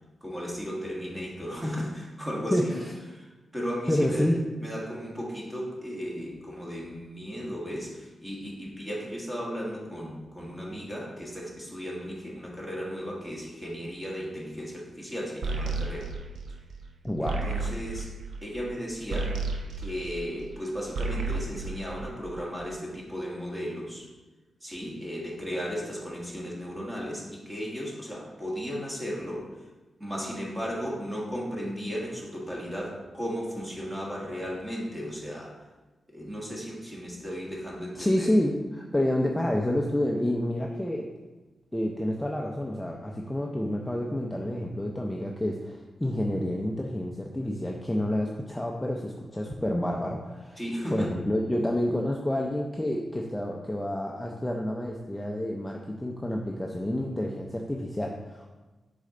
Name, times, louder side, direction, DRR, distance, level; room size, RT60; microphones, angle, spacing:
voice 1, 0.2-2.7 3.1-3.3 3.5-4.3 4.6-16.1 17.2-18.1 18.4-19.4 19.8-24.1 24.6-29.5 30.0-35.5 36.1-38.3 50.6-51.1, equal, 15° right, -4 dB, 1.6 m, -35 dB
voice 2, 3.9-4.4 17.0-17.4 37.9-41.1 41.7-50.6 50.9-58.5, left 1 dB, 10° left, 0 dB, 0.5 m, -29 dB
sound 1, 15.4-20.6 20.9-22.6, right 3 dB, 80° right, 0.6 m, -33 dB
6.5 x 4.2 x 3.8 m, 1.2 s
wide cardioid pair, 120°, 0 cm